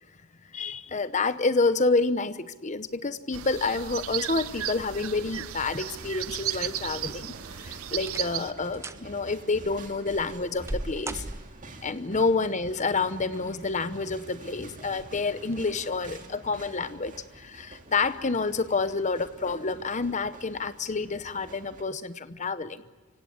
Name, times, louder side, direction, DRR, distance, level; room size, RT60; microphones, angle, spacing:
voice 1, 0.5-7.3 7.7-11.2 11.8-22.8, left 3 dB, 35° left, 13 dB, 0.8 m, -28 dB
sound 1, 3.3-8.5, right 11 dB, 80° right, 0.7 m, -35 dB
sound 2, 4.3-21.8, right 2 dB, 40° right, 2.1 m, -48 dB
sound 3, 7.2-7.5 8.0-8.4 8.7-9.1 9.6-11.8 13.0-13.6 14.1-14.2 14.9-15.1 15.5-15.6, right 1 dB, 15° right, 0.7 m, -39 dB
25.0 x 17.0 x 9.8 m, 1.3 s
head